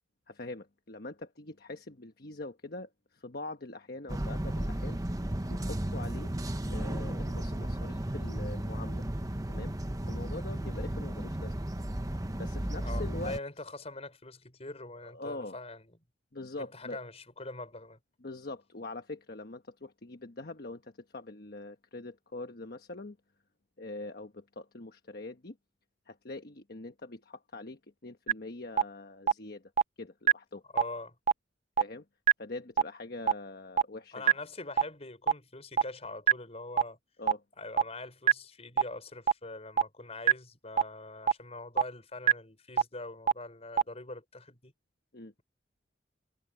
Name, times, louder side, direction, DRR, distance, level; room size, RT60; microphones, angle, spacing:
voice 1, 0.3-5.2 5.5-6.3 6.6-9.0 9.5-11.6 12.4-13.3 15.1-15.6 16.3-17.0 18.2-23.2 23.8-25.6 26.1-29.7 30.0-30.6 31.8-32.0 32.4-34.2 37.2-37.4 45.1-45.3, left 2 dB, 55° left, 1.2 m, -43 dB
sound 1, 4.1-13.4, right 1 dB, 20° right, 1.0 m, -34 dB
voice 2, 12.8-15.9 16.6-18.0 30.7-31.2 34.1-37.0 37.6-44.7, left 2 dB, 35° left, 5.5 m, -43 dB
sound 2, 28.3-28.4 28.8-28.9 29.3-29.4 29.8-29.9 30.3-30.4 30.8-30.9 31.3-31.4 31.8-31.9 32.3-32.4 32.8-32.9 33.3-33.4 33.8-33.9 34.3-34.4 34.8-34.9 35.3-35.4 35.8-35.9 36.3-36.4 36.8-36.9 37.3-37.4 37.8-37.9 38.3-38.4 38.8-38.9 39.3-39.4 39.8-39.9 40.3-40.4 40.8-40.9 41.3-41.4 41.8-41.9 42.3-42.4 42.8-42.9 43.3-43.4 43.8-43.9, right 9 dB, 35° right, 0.4 m, -21 dB
head